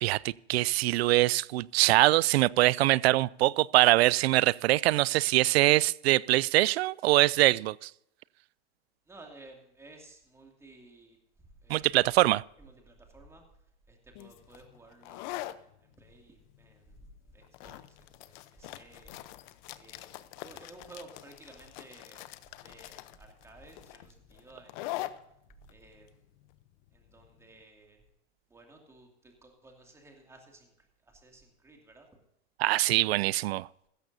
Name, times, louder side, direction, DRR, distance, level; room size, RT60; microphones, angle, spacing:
voice 1, 0.0-7.9 11.7-12.4 32.6-33.7, right 17 dB, 65° right, 0.5 m, -23 dB
voice 2, 9.1-11.2 11.6-11.9 12.6-13.4 13.9-19.4 19.7-22.3 22.6-25.1 25.7-26.3 26.9-28.0 28.5-32.1, right 2 dB, 10° right, 2.4 m, -55 dB
sound 1, 14.2-27.6, left 16 dB, 45° left, 0.8 m, -44 dB
15.5 x 13.5 x 2.7 m
supercardioid pair, 145°, 34 cm